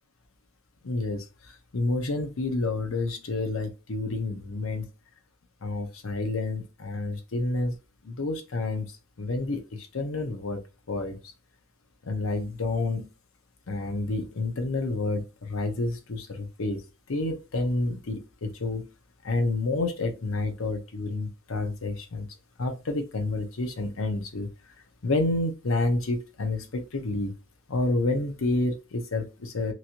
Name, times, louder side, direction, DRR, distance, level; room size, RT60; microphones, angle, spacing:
voice 1, 0.8-4.9 5.6-7.8 8.0-11.2 12.0-13.1 13.7-16.8 17.1-18.9 19.2-22.3 22.6-24.5 25.0-27.3 27.7-29.7, left 2 dB, 70° left, 0.7 m, -29 dB
3.0 x 2.8 x 2.5 m
head